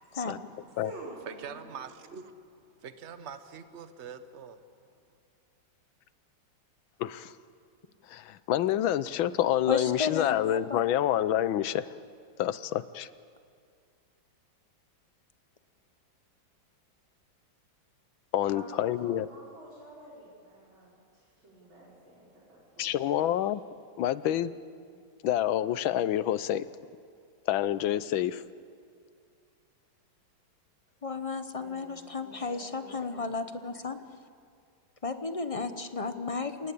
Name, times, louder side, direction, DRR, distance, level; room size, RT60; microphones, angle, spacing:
voice 1, 0.2-0.8 1.3-4.6, right 7 dB, 40° right, 10 dB, 1.3 m, -45 dB
voice 2, 0.8-1.9 18.5-23.2 31.6-33.9, right 1 dB, 85° right, -6 dB, 5.9 m, -49 dB
voice 3, 7.0-7.3 8.1-11.9 12.4-13.1 18.3-19.3 22.8-23.6 24.0-24.5 25.2-26.7 27.5-28.4, left 11 dB, 90° left, 15 dB, 1.6 m, -27 dB
voice 4, 9.7-10.8 31.0-34.0 35.0-36.7, left 4 dB, 30° left, 9 dB, 0.6 m, -34 dB
28.5 x 18.5 x 8.5 m, 2.3 s
omnidirectional pair, 2.1 m